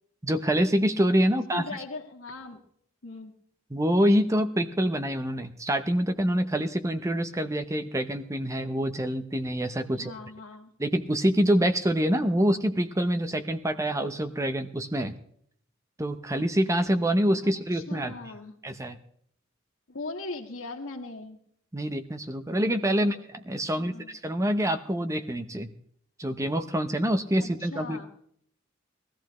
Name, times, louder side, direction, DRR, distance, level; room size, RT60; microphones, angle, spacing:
voice 1, 0.2-1.6 3.7-10.1 10.8-15.1 16.0-18.1 18.6-19.0 21.7-23.2 23.5-25.7 26.2-28.1, equal, 15° right, 8 dB, 0.8 m, -26 dB
voice 2, 1.3-2.6 3.0-3.3 9.9-10.7 17.4-18.5 19.9-21.4 22.9-23.1 23.7-24.2 27.4-28.1, left 3 dB, 85° left, 1 dB, 1.8 m, -40 dB
21.0 x 14.0 x 3.1 m, 0.64 s
head